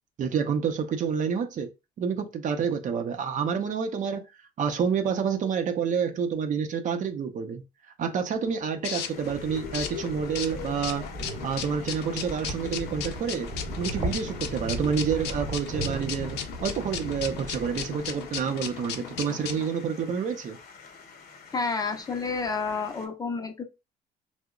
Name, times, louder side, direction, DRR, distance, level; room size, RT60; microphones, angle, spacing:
voice 1, 0.2-1.7 2.0-4.2 4.6-7.6 8.0-11.0 11.4-13.5 13.8-20.6, right 6 dB, 50° right, 0.6 m, -28 dB
sound 1, 8.1-19.7, left 9 dB, 85° left, 0.5 m, -37 dB
sound 2, 8.9-23.1, left 5 dB, 65° left, 0.9 m, -49 dB
sound 3, 9.1-18.3, right 2 dB, 25° right, 0.9 m, -37 dB
voice 2, 21.5-23.6, left 4 dB, 20° left, 0.5 m, -30 dB
2.8 x 2.1 x 3.6 m
cardioid pair, 110°, 17 cm